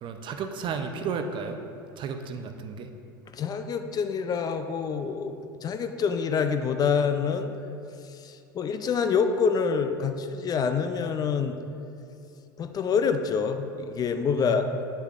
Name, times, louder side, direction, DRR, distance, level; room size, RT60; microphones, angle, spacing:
voice 1, 0.0-1.6 2.0-2.9 14.4-14.8, right 5 dB, 40° right, 6 dB, 0.6 m, -33 dB
voice 2, 3.3-5.3 5.6-7.5 8.2-11.6 12.6-14.7, left 6 dB, 30° left, 8 dB, 0.4 m, -26 dB
8.1 x 6.4 x 2.5 m, 2.6 s
hypercardioid pair, 80°, 12 cm